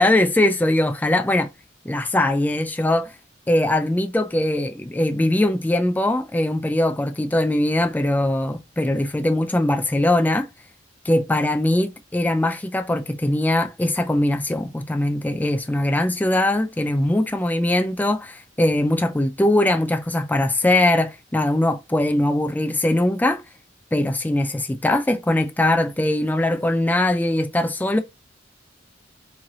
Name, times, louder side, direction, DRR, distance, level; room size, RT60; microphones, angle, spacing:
voice 1, 0.0-1.5 1.9-3.1 3.5-10.5 11.1-23.4 23.9-28.0, left 1 dB, 10° left, 0.3 m, -21 dB
3.1 x 2.6 x 3.8 m
head